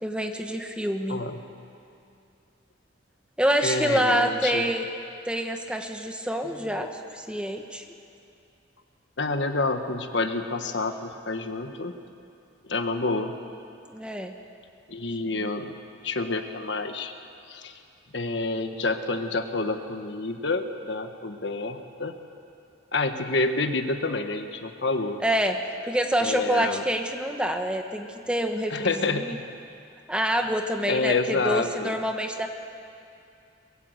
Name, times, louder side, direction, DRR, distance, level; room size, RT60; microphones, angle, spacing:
voice 1, 0.0-1.2 3.4-4.9 5.2-7.8 13.9-14.3 15.4-15.5 25.2-29.4 30.1-32.5, equal, 5° right, 4 dB, 1.3 m, -27 dB
voice 2, 3.6-4.7 9.2-11.9 12.7-13.4 14.9-15.7 16.0-17.1 17.5-17.7 18.1-22.1 22.9-25.2 26.2-26.8 28.7-29.4 30.9-32.0, left 3 dB, 65° left, 7 dB, 1.5 m, -28 dB
23.5 x 21.5 x 8.1 m, 2.6 s
head